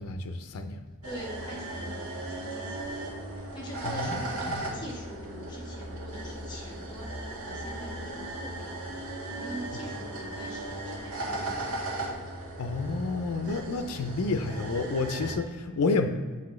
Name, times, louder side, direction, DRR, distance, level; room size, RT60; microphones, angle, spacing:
voice 1, 0.0-0.8 3.8-4.2 4.5-4.6 12.6-16.1, left 3 dB, 90° left, 7 dB, 0.5 m, -30 dB
voice 2, 1.0-3.0 3.3-8.8 9.3-11.8, right 1 dB, 20° left, -3 dB, 1.5 m, -43 dB
sound 1, 1.0-15.4, right 1 dB, 80° right, 1.9 m, -37 dB
8.2 x 5.3 x 3.1 m, 1.5 s
head